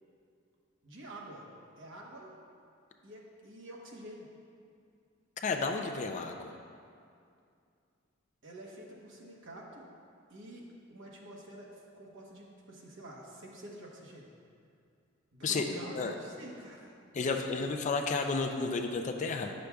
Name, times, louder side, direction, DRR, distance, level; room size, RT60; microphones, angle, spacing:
voice 1, 0.8-1.5 1.8-2.3 3.0-4.3 8.4-9.9 10.3-10.6 10.9-14.3 15.3-17.6, right 1 dB, 60° right, -2 dB, 1.1 m, -48 dB
voice 2, 5.4-6.5 15.4-15.7 16.0-16.1 17.1-19.5, left 4 dB, 35° left, 4 dB, 0.4 m, -32 dB
9.6 x 6.3 x 2.3 m, 2.4 s
head